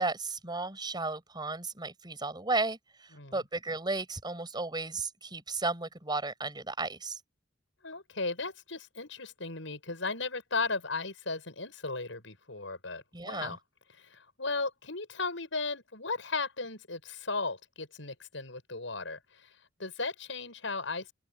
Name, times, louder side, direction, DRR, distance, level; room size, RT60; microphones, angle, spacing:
voice 1, 0.0-7.2 13.1-13.6, right 3 dB, 25° right, 6.4 m, -34 dB
voice 2, 7.8-13.6 14.0-19.2 19.8-21.1, left 3 dB, 75° left, 7.7 m, -36 dB
head